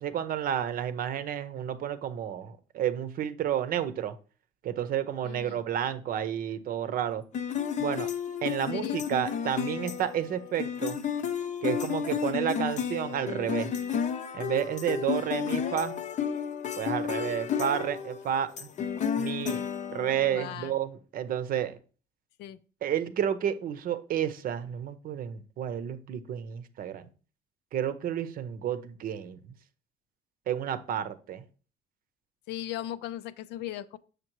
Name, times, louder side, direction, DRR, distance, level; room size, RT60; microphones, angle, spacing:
voice 1, 0.0-4.2 4.6-7.2 7.8-8.1 8.4-11.0 11.6-13.7 14.3-16.0 16.7-18.7 19.2-19.6 19.9-21.8 22.8-27.1 27.7-29.4 30.5-31.4, right 9 dB, 55° right, 0.7 m, -31 dB
voice 2, 5.2-5.6 8.7-9.0 20.3-20.8 22.4-22.6 32.5-34.0, left 13 dB, 85° left, 0.5 m, -38 dB
sound 1, 7.3-20.5, left 8 dB, 45° left, 0.6 m, -32 dB
6.6 x 6.6 x 3.0 m
cardioid pair, 110°, 17 cm